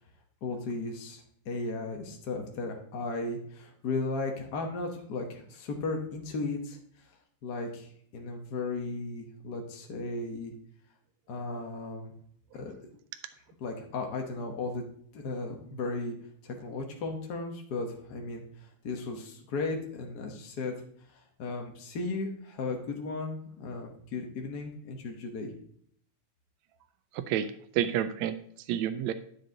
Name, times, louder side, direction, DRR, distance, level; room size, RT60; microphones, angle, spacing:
voice 1, 0.4-6.8 7.4-10.5 11.3-12.1 12.5-12.8 13.6-14.8 15.1-16.1 16.4-20.7 21.1-25.5, left 3 dB, 70° left, 2 dB, 0.9 m, -35 dB
voice 2, 27.1-29.1, right 10 dB, 80° right, 10 dB, 1.7 m, -30 dB
9.7 x 6.3 x 3.8 m, 0.64 s
omnidirectional pair, 3.5 m